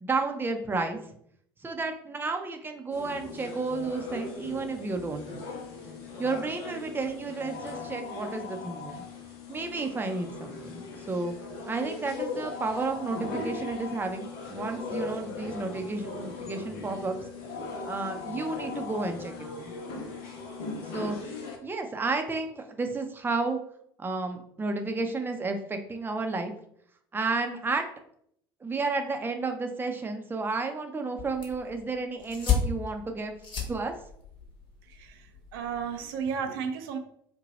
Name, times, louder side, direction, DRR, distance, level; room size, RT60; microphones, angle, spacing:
voice 1, 0.0-1.0 1.6-5.4 6.2-9.0 9.5-11.3 11.7-17.2 17.8-19.7 20.9-21.2 21.6-23.6 24.0-26.5 27.1-27.8 28.6-33.3 33.7-34.0, right 3 dB, 15° right, 5 dB, 0.5 m, -32 dB
sound 1, 2.9-21.6, left 4 dB, 70° left, 0.7 m, -39 dB
sound 2, 31.2-36.2, left 6 dB, 45° left, 1.0 m, -34 dB
voice 2, 34.9-37.0, right 6 dB, 70° right, 5 dB, 0.4 m, -34 dB
2.8 x 2.2 x 4.0 m, 0.68 s
hypercardioid pair, 65°, 12 cm